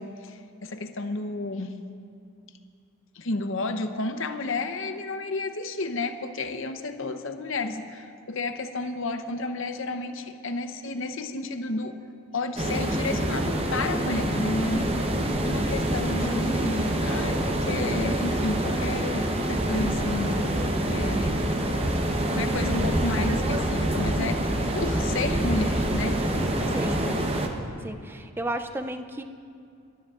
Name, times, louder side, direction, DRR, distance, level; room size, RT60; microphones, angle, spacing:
voice 1, 0.0-1.7 3.1-12.0 12.3-15.0 15.4-20.4 20.9-21.4 22.2-26.2 26.6-27.2, left 2 dB, 60° left, 7 dB, 0.8 m, -31 dB
sound 1, 12.6-27.5, right 1 dB, 25° right, 0.9 m, -26 dB
voice 2, 26.7-27.1 27.8-29.2, right 1 dB, 10° right, 8 dB, 0.4 m, -33 dB
27.0 x 13.0 x 2.5 m, 2.4 s
head